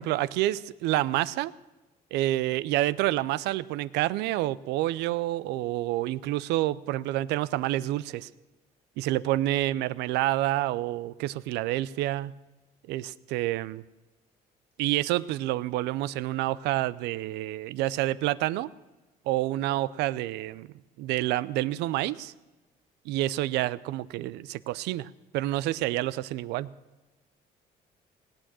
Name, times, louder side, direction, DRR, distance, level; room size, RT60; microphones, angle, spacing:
voice 1, 0.0-1.5 2.1-8.3 9.0-12.3 12.9-13.8 14.8-18.7 19.3-20.7 21.0-22.3 23.1-26.7, right 15 dB, 90° right, 18 dB, 0.5 m, -28 dB
18.5 x 8.9 x 7.5 m, 1.1 s
cardioid pair, 110°, 17 cm